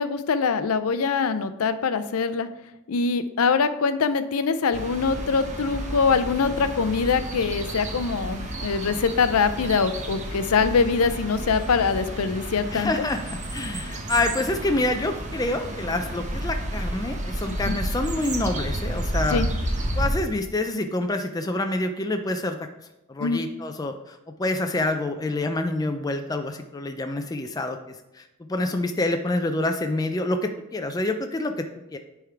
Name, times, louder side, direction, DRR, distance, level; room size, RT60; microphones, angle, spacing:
voice 1, 0.0-2.5 2.9-13.1 17.5-17.8 19.3-19.5 23.2-23.4, left 5 dB, 80° left, 11 dB, 0.5 m, -23 dB
sound 1, 4.7-20.1, right 1 dB, 35° right, 1.0 m, -31 dB
voice 2, 12.7-19.4 20.0-22.6 23.1-31.5 31.9-32.0, left 2 dB, 15° left, 6 dB, 0.4 m, -27 dB
10.0 x 3.6 x 4.5 m, 0.94 s
head